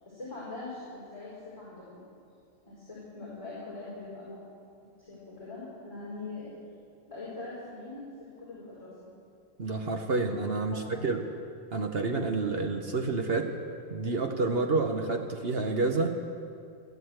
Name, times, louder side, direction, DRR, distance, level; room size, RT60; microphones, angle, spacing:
voice 1, 0.0-2.0 2.6-4.4 5.0-6.5 7.1-8.9 10.7-10.8, left 3 dB, 15° left, -9 dB, 4.8 m, -42 dB
voice 2, 9.6-11.2 11.7-13.5 13.9-16.2, right 3 dB, 60° right, 4 dB, 0.6 m, -29 dB
15.0 x 12.0 x 8.0 m, 2.4 s
omnidirectional pair, 2.4 m